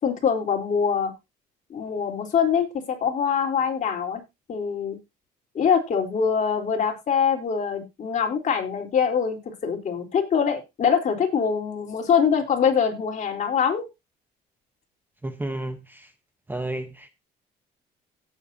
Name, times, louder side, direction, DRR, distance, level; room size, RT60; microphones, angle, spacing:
voice 1, 0.0-1.1 1.7-4.2 4.5-5.0 5.5-13.9, left 7 dB, 45° left, 4.0 m, -24 dB
voice 2, 15.2-16.1 16.5-17.1, right 1 dB, 10° right, 1.1 m, -32 dB
17.5 x 8.2 x 2.8 m
cardioid pair, 110°, 17 cm